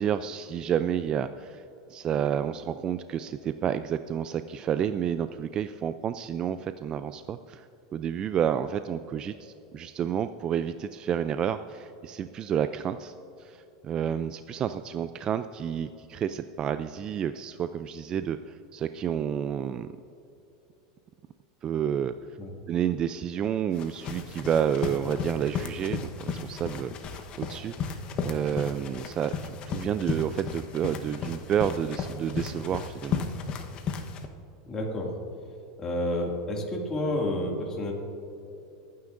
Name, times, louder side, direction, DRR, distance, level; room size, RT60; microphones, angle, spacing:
voice 1, 0.0-1.6 1.9-7.7 7.9-19.9 21.6-22.1 22.7-33.3, right 9 dB, 35° right, 11 dB, 0.3 m, -30 dB
sound 1, 23.7-34.3, left 6 dB, 40° left, 1.0 m, -35 dB
voice 2, 34.7-35.1 35.8-37.9, left 1 dB, 25° left, -2 dB, 2.2 m, -30 dB
24.5 x 9.5 x 2.6 m, 2.8 s
supercardioid pair, 120°, 2 cm